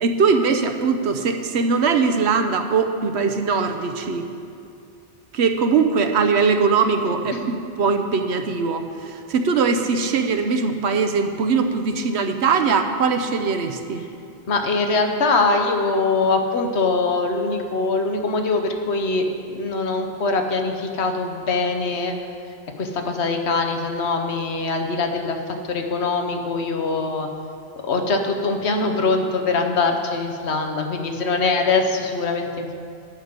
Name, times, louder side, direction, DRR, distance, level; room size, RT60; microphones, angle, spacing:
voice 1, 0.0-4.2 5.3-14.0, right 5 dB, 80° right, 6 dB, 1.0 m, -21 dB
voice 2, 14.5-22.2 22.8-25.4 25.7-27.3 27.8-32.7, left 3 dB, 85° left, 4 dB, 1.2 m, -23 dB
11.5 x 5.2 x 8.1 m, 2.5 s
omnidirectional pair, 1.1 m